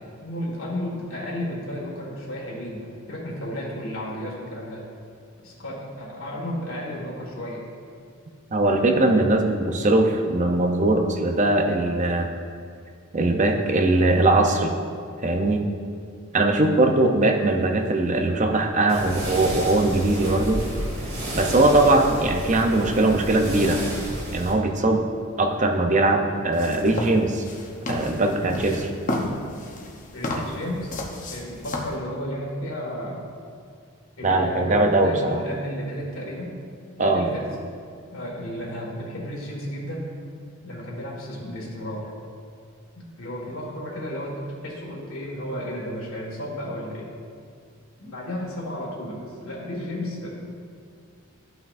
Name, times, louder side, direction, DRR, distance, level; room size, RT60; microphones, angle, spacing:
voice 1, 0.2-4.9 5.4-7.7 30.1-31.0 31.3-33.2 34.2-36.6 37.0-37.5 38.1-40.1 40.6-42.1 43.0-44.3 44.6-47.1 48.0-50.3, equal, 85° left, -4 dB, 1.8 m, -33 dB
voice 2, 8.5-12.3 13.1-14.7 15.2-15.6 16.3-20.6 21.3-23.8 24.3-25.1 25.4-27.5 27.9-28.9 34.2-35.4 37.0-37.3, right 2 dB, 35° right, 4 dB, 0.6 m, -20 dB
sound 1, 18.9-24.5, equal, 85° right, 2.0 m, -31 dB
sound 2, 26.5-32.0, left 1 dB, 40° left, 0.9 m, -32 dB
12.5 x 5.8 x 2.6 m, 2.3 s
head